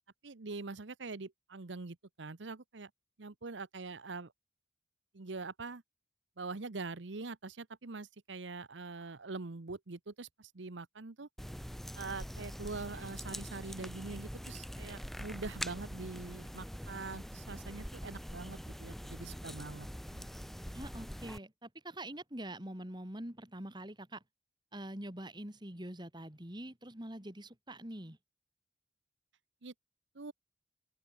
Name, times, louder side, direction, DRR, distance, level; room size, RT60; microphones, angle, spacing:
voice 1, 0.2-2.9 3.2-4.3 5.1-5.8 6.4-11.3 12.0-20.3 29.6-29.7 30.1-30.3, right 3 dB, 80° right, 1.0 m, -44 dB
sound 1, 11.4-21.4, equal, ahead, 1.3 m, -44 dB
voice 2, 20.7-24.2 24.7-28.2, right 1 dB, 25° right, 3.0 m, -45 dB
open air
head